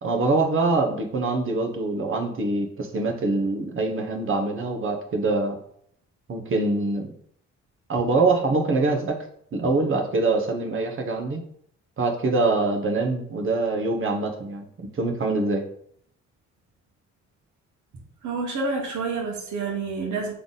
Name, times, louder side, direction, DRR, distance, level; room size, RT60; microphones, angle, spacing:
voice 1, 0.0-5.6 6.3-7.1 7.9-9.2 9.5-11.4 12.0-15.6, right 3 dB, 45° right, 3 dB, 0.9 m, -24 dB
voice 2, 17.9-20.3, right 4 dB, 75° right, 1 dB, 1.4 m, -29 dB
3.9 x 3.4 x 3.9 m, 0.66 s
cardioid pair, 90°, 30 cm